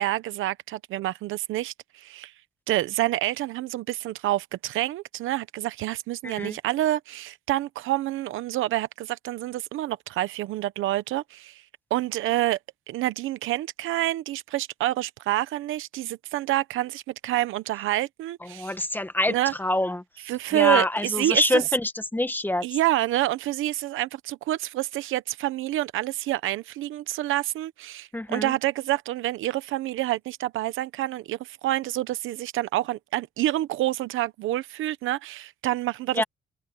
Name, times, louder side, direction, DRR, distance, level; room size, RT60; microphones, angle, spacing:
voice 1, 0.0-2.3 2.7-11.6 11.9-12.6 12.9-18.7 19.3-19.5 20.2-21.6 22.6-36.2, right 15 dB, 85° right, 0.9 m, -27 dB
voice 2, 6.2-6.6 18.5-20.0 20.5-22.6 28.1-28.5 36.1-36.2, left 1 dB, 10° left, 1.5 m, -25 dB
open air
cardioid pair, 90°, 20 cm